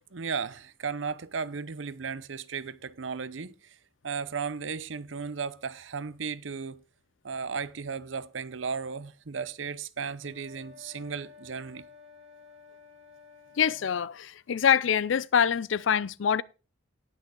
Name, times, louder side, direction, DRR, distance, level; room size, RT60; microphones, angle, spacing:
voice 1, 0.1-3.8 4.0-6.8 7.2-11.9, right 5 dB, 75° right, 0.7 m, -35 dB
sound 1, 10.2-14.1, left 5 dB, 35° right, 5.6 m, -53 dB
voice 2, 13.6-16.4, left 8 dB, 70° left, 0.4 m, -25 dB
18.5 x 6.3 x 3.8 m
head